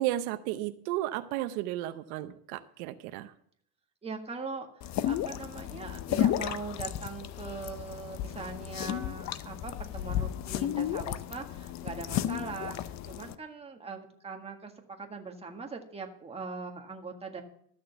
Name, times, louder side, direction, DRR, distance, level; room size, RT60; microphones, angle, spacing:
voice 1, 0.0-3.3, right 14 dB, 80° right, 11 dB, 0.8 m, -33 dB
voice 2, 4.0-14.7 15.0-17.4, right 4 dB, 15° right, 2 dB, 1.7 m, -41 dB
sound 1, 4.8-13.4, left 11 dB, 40° left, 0.6 m, -33 dB
13.0 x 6.6 x 6.7 m, 0.65 s
supercardioid pair, 130°, 42 cm